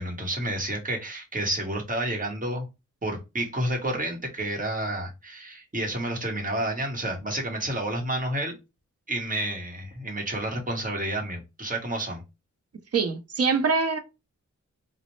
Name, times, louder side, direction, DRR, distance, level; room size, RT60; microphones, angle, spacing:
voice 1, 0.0-2.7 3.0-8.5 9.1-12.2, right 1 dB, 30° right, 1.1 m, -30 dB
voice 2, 12.9-14.0, right 4 dB, 55° right, 0.6 m, -24 dB
4.0 x 2.0 x 3.1 m
wide cardioid pair, 105°, 30 cm